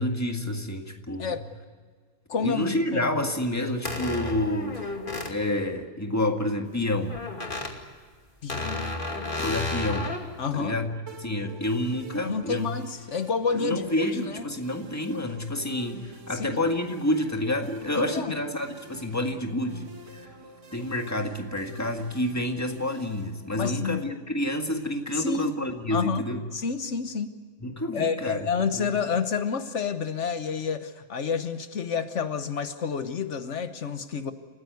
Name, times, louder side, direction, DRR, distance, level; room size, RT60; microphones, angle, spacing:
voice 1, 0.0-1.4 2.4-4.9 5.2-7.2 9.4-10.2 10.5-10.9 11.2-12.7 13.5-20.3 20.7-26.4 27.6-28.5 28.8-28.9, left 1 dB, 15° left, 4 dB, 1.8 m, -29 dB
voice 2, 2.3-2.6 2.9-3.3 8.4-9.0 10.4-10.8 12.3-14.4 16.3-16.6 17.9-18.4 23.5-24.0 25.1-25.5 25.9-26.3 26.5-27.4 27.9-34.3, left 6 dB, 75° left, 10 dB, 1.4 m, -29 dB
sound 1, 3.9-5.4 7.1-7.7 8.5-10.2, left 2 dB, 45° left, 2.7 m, -32 dB
sound 2, 11.1-24.1, right 4 dB, 85° right, 2.2 m, -47 dB
28.5 x 15.5 x 9.4 m, 1.5 s
omnidirectional pair, 1.2 m